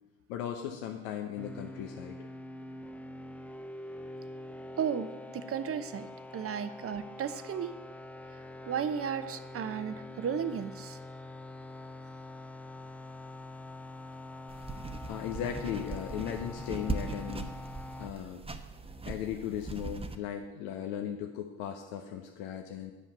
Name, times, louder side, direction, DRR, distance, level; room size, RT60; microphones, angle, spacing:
voice 1, 0.3-2.3 15.1-17.5 18.0-18.4 19.0-22.9, left 9 dB, 70° left, 3 dB, 0.9 m, -37 dB
sound 1, 1.4-18.1, left 1 dB, 5° left, 0.4 m, -45 dB
voice 2, 4.8-5.1 5.3-6.1 6.3-7.8 8.6-11.0, right 7 dB, 35° right, 12 dB, 0.8 m, -34 dB
sound 2, 14.5-20.2, right 3 dB, 15° right, 0.9 m, -40 dB
8.3 x 5.7 x 8.0 m, 1.1 s
hypercardioid pair, 65°, 38 cm